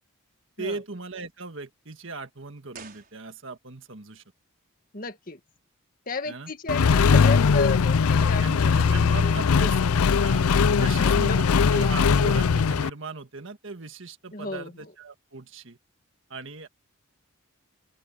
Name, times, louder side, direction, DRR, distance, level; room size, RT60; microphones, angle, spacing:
voice 1, 0.6-4.2 6.3-6.5 8.4-9.8 10.1-15.8 16.3-16.7, right 3 dB, 60° right, 1.8 m, -38 dB
sound 1, 2.7-3.8 4.1-4.2, right 6 dB, 40° right, 5.8 m, -49 dB
voice 2, 4.9-5.4 6.1-9.3 10.6-11.4 14.3-14.9, left 3 dB, 40° left, 2.1 m, -33 dB
Accelerating revving vroom, 6.7-12.9, left 5 dB, 80° left, 0.5 m, -20 dB
open air
head